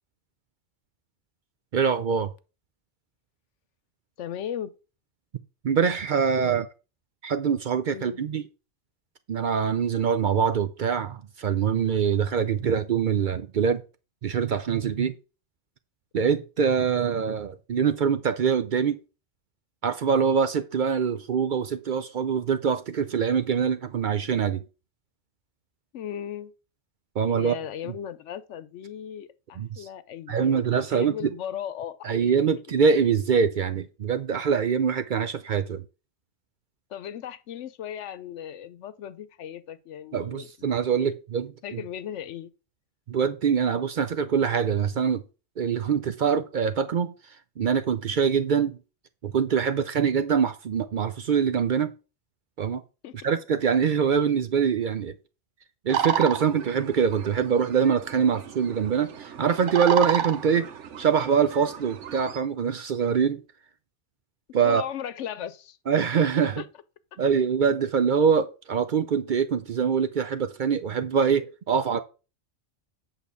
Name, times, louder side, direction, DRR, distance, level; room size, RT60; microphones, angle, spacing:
voice 1, 1.7-2.3 5.6-6.6 7.2-8.4 9.3-13.8 14.2-15.1 16.1-19.0 19.8-24.6 27.2-27.5 29.6-29.8 30.3-31.3 32.0-35.8 40.1-41.8 43.1-45.2 45.6-47.1 47.6-48.8 49.2-51.9 52.6-52.8 53.2-55.1 55.9-60.7 61.0-63.4 64.5-64.8 65.9-66.6 67.2-72.0, right 7 dB, 55° right, 0.6 m, -24 dB
voice 2, 4.2-4.7 6.4-6.6 7.9-8.2 25.9-26.5 27.3-32.1 36.9-41.1 41.6-42.5 53.0-53.1 64.6-65.8 66.6-66.7, left 9 dB, 90° left, 1.0 m, -37 dB
sound 1, 55.9-62.4, right 8 dB, 80° right, 1.1 m, -32 dB
8.4 x 3.7 x 6.8 m
omnidirectional pair, 1.2 m